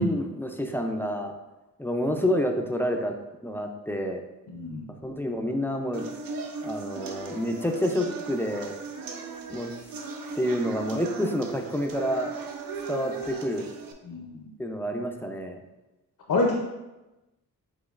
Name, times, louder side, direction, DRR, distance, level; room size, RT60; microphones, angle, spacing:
voice 1, 0.0-1.3 1.8-3.1 3.4-4.2 5.0-6.1 6.6-8.7 9.5-9.7 10.4-12.3 12.9-13.7 14.6-15.6, equal, 5° left, 3 dB, 0.3 m, -28 dB
voice 2, 4.5-4.9 14.0-14.5 16.3-16.6, left 2 dB, 65° left, 0 dB, 0.6 m, -27 dB
sound 1, 5.9-13.9, right 4 dB, 75° right, 0.6 m, -37 dB
5.1 x 3.7 x 2.4 m, 1.0 s
wide cardioid pair, 105°, 35 cm